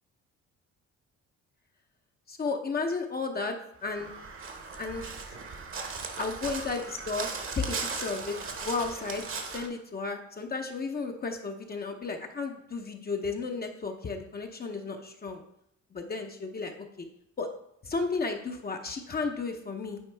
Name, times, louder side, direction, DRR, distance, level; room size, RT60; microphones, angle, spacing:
voice 1, 2.3-4.1 4.8-5.1 6.2-7.3 7.5-9.2 9.5-15.4 15.9-17.1 17.4-17.5 17.8-20.0, left 4 dB, 30° left, 3 dB, 0.7 m, -33 dB
Crow, 3.8-9.7, right 4 dB, 45° right, 1.0 m, -38 dB
9.4 x 4.1 x 3.4 m, 0.77 s
cardioid pair, 90°, 30 cm